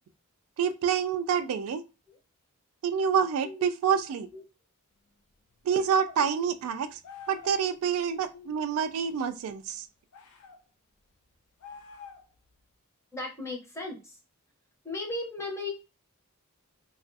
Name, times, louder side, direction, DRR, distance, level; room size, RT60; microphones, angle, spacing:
voice 1, 0.6-1.8 2.8-4.3 5.6-7.0 7.3-9.9, right 7 dB, 70° right, 11 dB, 0.3 m, -27 dB
sound 1, 5.7-6.2 7.0-7.6 10.1-10.6 11.6-12.4, left 5 dB, 75° left, 0.4 m, -47 dB
voice 2, 8.1-8.5 13.1-14.2 14.8-15.7, left 2 dB, 15° left, -1 dB, 0.7 m, -37 dB
2.4 x 2.3 x 2.5 m, 0.29 s
head